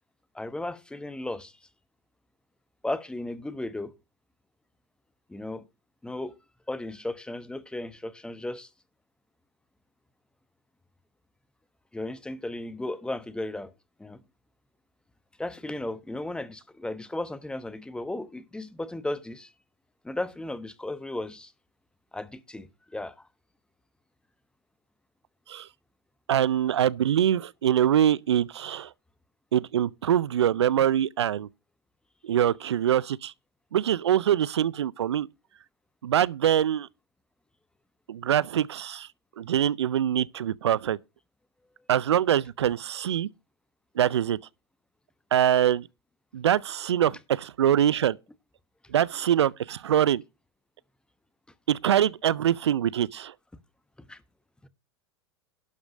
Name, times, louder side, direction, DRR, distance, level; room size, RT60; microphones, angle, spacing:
voice 1, 0.3-1.5 2.8-3.9 5.3-5.6 6.0-6.3 6.7-8.7 11.9-13.7 14.0-14.2 15.4-19.5 20.0-21.5 22.1-23.3 54.0-54.2, left 2 dB, 5° left, 1.1 m, -35 dB
voice 2, 26.3-28.9 29.5-31.5 32.2-33.3 33.7-35.3 36.0-36.9 38.1-39.1 39.4-41.0 41.9-43.3 44.0-44.4 45.3-45.9 46.3-48.2 48.9-50.2 51.7-53.3, right 10 dB, 80° right, 0.4 m, -24 dB
11.5 x 5.0 x 6.1 m
hypercardioid pair, 95°, 14 cm